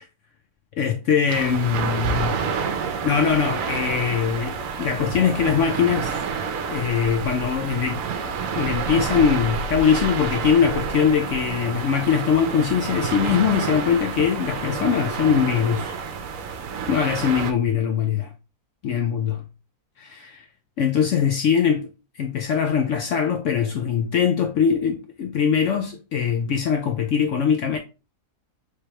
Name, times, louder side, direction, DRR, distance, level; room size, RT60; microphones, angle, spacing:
voice 1, 0.8-2.4 3.0-6.1 6.7-8.0 8.6-15.9 16.9-18.3 18.8-19.4 20.0-20.4 20.8-21.9 22.2-27.8, left 7 dB, 70° left, 0.7 m, -22 dB
sound 1, 1.3-17.5, right 6 dB, 65° right, 1.0 m, -29 dB
4.7 x 3.4 x 2.9 m
omnidirectional pair, 1.7 m